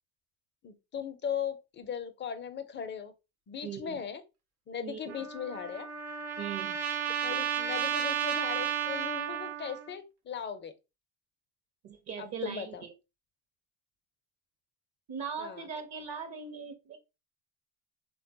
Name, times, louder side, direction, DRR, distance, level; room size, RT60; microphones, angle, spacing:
voice 1, 0.6-3.1 3.5-4.2 4.7-5.9 7.2-10.7 12.2-12.8 15.4-15.6, left 7 dB, 25° left, 0.5 m, -38 dB
voice 2, 3.6-4.0 4.8-5.2 6.4-6.8 11.8-12.9 15.1-17.0, right 6 dB, 40° right, 0.7 m, -40 dB
Trumpet, 5.1-9.9, right 9 dB, 90° right, 0.6 m, -33 dB
3.4 x 2.3 x 2.6 m
hypercardioid pair, 70°, 43 cm